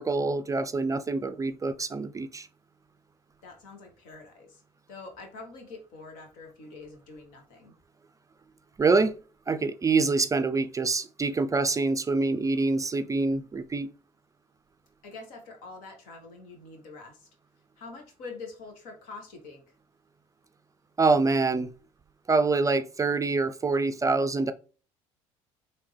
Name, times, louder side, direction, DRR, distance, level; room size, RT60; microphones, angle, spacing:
voice 1, 0.0-2.5 8.8-9.2 9.5-13.9 21.0-21.7 22.3-24.5, right 3 dB, 20° right, 0.4 m, -25 dB
voice 2, 3.4-4.6 4.9-7.7 15.0-17.3 17.8-19.7, left 3 dB, 70° left, 1.1 m, -45 dB
3.4 x 2.7 x 3.2 m
hypercardioid pair, 60°, 15 cm